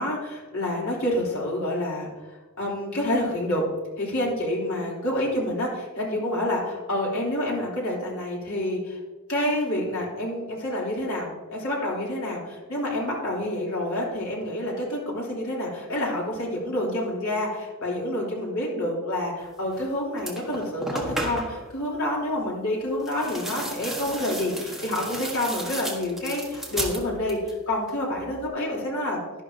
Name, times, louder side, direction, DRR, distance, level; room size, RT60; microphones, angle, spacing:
voice 1, 0.0-3.6 4.0-9.0 9.3-29.2, left 1 dB, 70° left, -4 dB, 3.3 m, -28 dB
sound 1, 19.7-19.9 20.2-21.7 23.0-27.6 27.9-28.5, right 1 dB, ahead, 1.4 m, -34 dB
11.5 x 11.5 x 2.8 m, 1.3 s
head